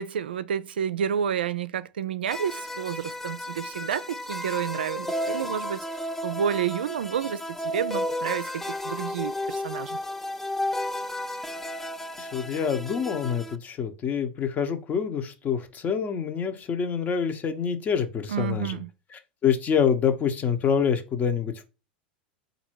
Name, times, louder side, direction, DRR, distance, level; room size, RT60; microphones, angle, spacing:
voice 1, 0.0-5.9 6.2-7.4 7.7-10.0 18.3-18.9, right 8 dB, 85° right, 0.4 m, -30 dB
sound 1, 2.3-13.6, left 1 dB, 5° left, 0.4 m, -33 dB
voice 2, 12.2-18.8 19.4-21.6, left 7 dB, 35° left, 0.9 m, -26 dB
4.0 x 2.7 x 4.6 m
hypercardioid pair, 95°, 5 cm